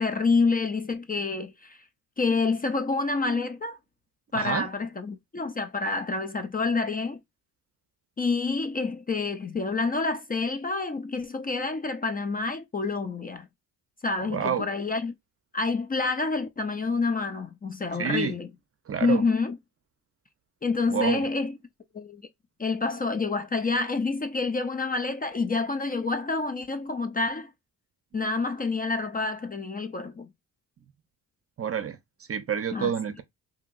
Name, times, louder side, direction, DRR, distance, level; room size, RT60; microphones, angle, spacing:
voice 1, 0.0-1.8 2.2-3.8 4.3-7.2 8.2-13.5 14.0-15.1 15.5-18.5 19.0-19.6 20.6-21.6 21.9-22.2 22.6-27.5 28.1-30.3 32.7-32.9, left 3 dB, 25° left, 0.5 m, -28 dB
voice 2, 4.3-4.7 14.3-14.7 17.9-18.3 18.9-19.2 20.9-21.3 31.6-32.0 32.3-33.2, right 7 dB, 35° right, 0.6 m, -28 dB
2.8 x 2.7 x 2.5 m
cardioid pair, 75°, 39 cm